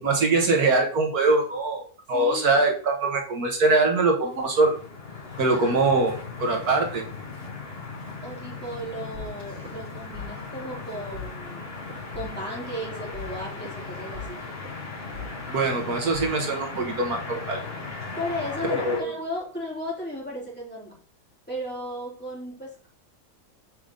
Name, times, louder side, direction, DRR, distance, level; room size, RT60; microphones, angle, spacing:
voice 1, 0.0-4.8 5.4-7.0 15.5-17.6 18.8-19.1, right 3 dB, 75° right, 2 dB, 1.7 m, -23 dB
voice 2, 2.1-2.6 8.2-11.7 12.1-14.5 18.2-20.9 21.5-22.9, equal, 5° left, -5 dB, 3.3 m, -35 dB
sound 1, 4.2-19.0, left 3 dB, 40° left, 2.5 m, -37 dB
sound 2, 9.1-10.2 10.5-10.7 11.1-11.2 11.8-12.8 13.1-17.1, left 5 dB, 45° right, 2.9 m, -42 dB
7.8 x 4.9 x 3.8 m, 0.42 s
omnidirectional pair, 1.6 m